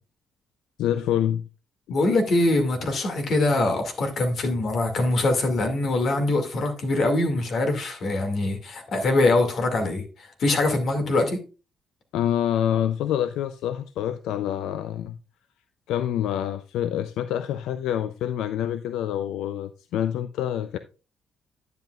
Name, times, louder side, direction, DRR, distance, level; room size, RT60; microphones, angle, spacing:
voice 1, 0.8-1.4 1.9-2.0 12.1-15.2 15.9-20.8, left 10 dB, 90° left, 0.4 m, -26 dB
voice 2, 1.9-10.0 10.4-11.4, left 2 dB, 60° left, 2.1 m, -23 dB
10.5 x 8.0 x 2.4 m
cardioid pair, 90°, 0 cm